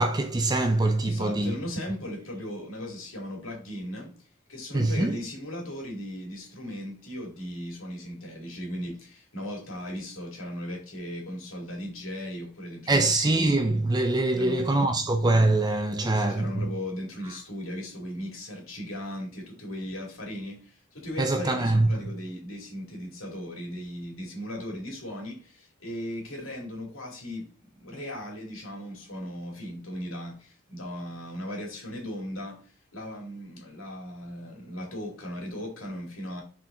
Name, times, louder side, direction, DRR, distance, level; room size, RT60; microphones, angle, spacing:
voice 1, 0.0-1.6 4.7-5.2 12.9-16.7 21.2-21.9, right 2 dB, 20° right, 0.4 m, -24 dB
voice 2, 1.0-4.1 4.5-13.5 14.3-15.0 16.0-27.5 27.8-36.4, equal, 90° left, 2.5 m, -37 dB
6.2 x 4.4 x 3.8 m
head